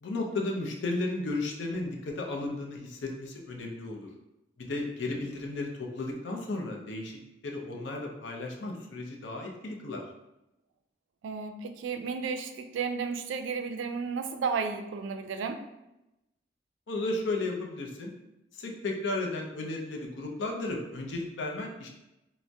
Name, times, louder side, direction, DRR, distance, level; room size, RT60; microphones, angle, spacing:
voice 1, 0.0-4.1 4.6-7.2 7.4-10.0 16.9-18.1 18.5-21.9, left 2 dB, 75° left, 1 dB, 0.5 m, -34 dB
voice 2, 11.2-15.6, right 5 dB, 90° right, 6 dB, 0.3 m, -33 dB
2.6 x 2.0 x 3.3 m, 0.92 s
head